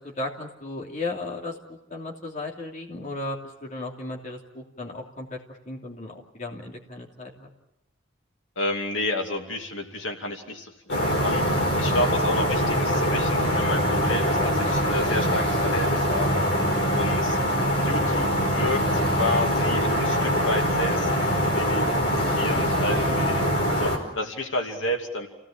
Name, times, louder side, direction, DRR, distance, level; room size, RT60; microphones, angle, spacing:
voice 1, 0.0-5.4 5.7-7.5 11.8-12.0, left 2 dB, 40° left, -1 dB, 3.0 m, -35 dB
voice 2, 8.6-11.4 11.8-16.4 16.9-17.4 17.7-21.9 22.3-25.3, left 1 dB, 80° left, 3 dB, 2.8 m, -31 dB
sound 1, 10.9-24.0, equal, 55° left, 5.0 m, -23 dB
28.5 x 17.5 x 8.8 m, 0.92 s
head